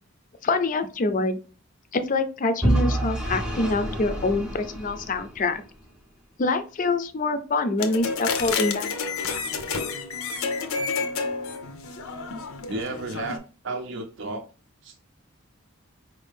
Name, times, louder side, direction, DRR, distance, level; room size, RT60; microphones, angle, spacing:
voice 1, 0.4-1.4 1.9-5.6 6.4-9.1, left 3 dB, 40° left, 10 dB, 0.4 m, -25 dB
Vehicle / Engine, 2.6-5.6, right 1 dB, 5° right, 0.6 m, -27 dB
sound 1, 7.8-13.4, left 5 dB, 90° left, 0.6 m, -30 dB
voice 2, 12.7-13.4 13.6-14.4 14.8-15.0, right 2 dB, 60° right, 4 dB, 0.5 m, -32 dB
4.5 x 2.6 x 3.4 m, 0.35 s
head